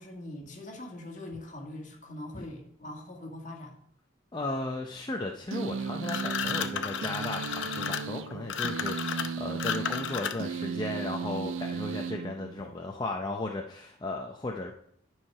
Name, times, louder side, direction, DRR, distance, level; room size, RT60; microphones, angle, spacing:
voice 1, 0.0-3.7, left 1 dB, 40° left, 0 dB, 1.7 m, -42 dB
voice 2, 4.3-14.7, left 2 dB, 20° left, 2 dB, 0.6 m, -35 dB
sound 1, 5.5-12.9, right 5 dB, 80° right, 0.5 m, -36 dB
sound 2, 6.0-10.6, left 7 dB, 70° left, 0.7 m, -33 dB
10.5 x 4.8 x 5.6 m, 0.67 s
head